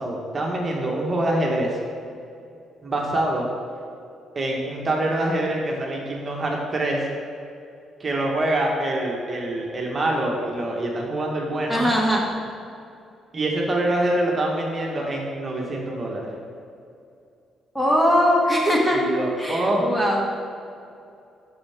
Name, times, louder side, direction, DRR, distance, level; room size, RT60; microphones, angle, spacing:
voice 1, 0.0-1.8 2.8-3.5 4.3-7.1 8.0-11.9 13.3-16.3 18.9-19.9, right 1 dB, 35° right, -1 dB, 1.5 m, -25 dB
voice 2, 11.7-12.2 17.7-19.0 19.4-20.3, equal, 5° left, -2 dB, 1.5 m, -20 dB
11.5 x 5.5 x 3.6 m, 2.5 s
cardioid pair, 90°, 0 cm